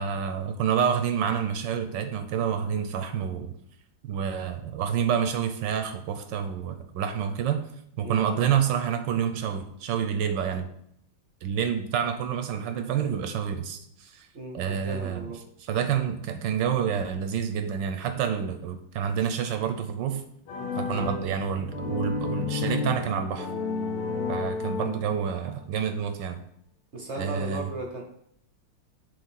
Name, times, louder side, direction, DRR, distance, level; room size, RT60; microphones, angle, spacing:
voice 1, 0.0-3.6 4.0-7.6 8.0-10.7 11.4-14.3 14.5-15.3 15.6-20.2 20.8-23.5 24.3-26.4 27.2-27.7, right 8 dB, 70° right, 8 dB, 1.1 m, -28 dB
voice 2, 14.3-15.4 20.9-21.1 26.9-28.0, right 3 dB, 55° right, 2 dB, 0.7 m, -36 dB
sound 1, 20.5-25.4, left 4 dB, 85° left, 1.8 m, -31 dB
7.3 x 3.3 x 6.2 m, 0.72 s
omnidirectional pair, 2.4 m